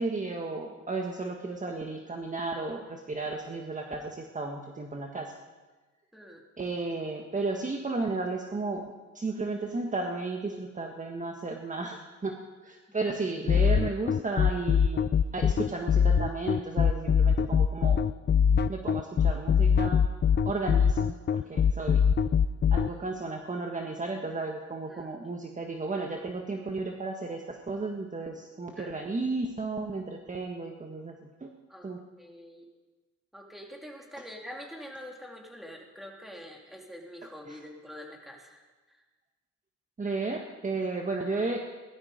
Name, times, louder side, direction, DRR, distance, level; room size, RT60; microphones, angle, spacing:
voice 1, 0.0-5.3 6.6-8.9 9.1-12.3 12.6-15.1 15.3-18.1 18.7-20.0 20.4-21.2 21.5-22.0 22.7-31.5 31.8-32.0 37.5-37.6 40.0-41.6, right 3 dB, 25° right, 2 dB, 1.6 m, -33 dB
sound 1, 13.5-22.9, left 7 dB, 35° left, 0.5 m, -22 dB
voice 2, 28.8-29.2 31.7-31.9 32.2-32.7 33.3-38.6 38.9-39.0, equal, ahead, 0 dB, 3.1 m, -45 dB
17.5 x 12.5 x 5.2 m, 1.2 s
cardioid pair, 90°, 30 cm